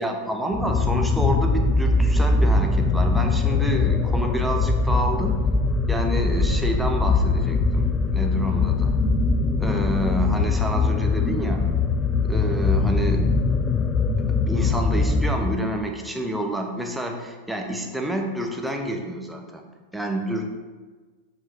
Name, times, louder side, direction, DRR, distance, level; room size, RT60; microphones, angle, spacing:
voice 1, 0.0-5.3 5.9-9.0 9.6-11.6 12.2-13.4 14.3-19.6 19.9-20.4, right 1 dB, 5° right, 3 dB, 0.8 m, -28 dB
sound 1, 0.5-15.9, left 3 dB, 20° left, 0.4 m, -22 dB
7.5 x 4.8 x 3.2 m, 1.3 s
figure-of-eight pair, 90°, 0 cm